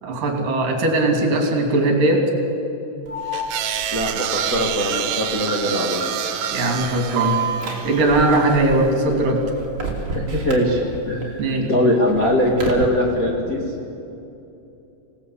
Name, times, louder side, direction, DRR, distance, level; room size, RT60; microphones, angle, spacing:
voice 1, 0.0-2.2 6.5-7.4 7.8-9.4 11.4-11.7, right 2 dB, 50° right, 2 dB, 4.0 m, -19 dB
Alarm, 3.1-11.2 11.6-12.8, right 4 dB, 30° right, 3.3 m, -30 dB
sound 1, 3.3-8.7, right 10 dB, 75° right, 3.5 m, -28 dB
voice 2, 3.9-6.0 10.1-10.8 11.1-11.4 11.7-13.6, left 1 dB, 50° left, -2 dB, 0.9 m, -21 dB
26.5 x 18.5 x 8.5 m, 2.8 s
omnidirectional pair, 5.8 m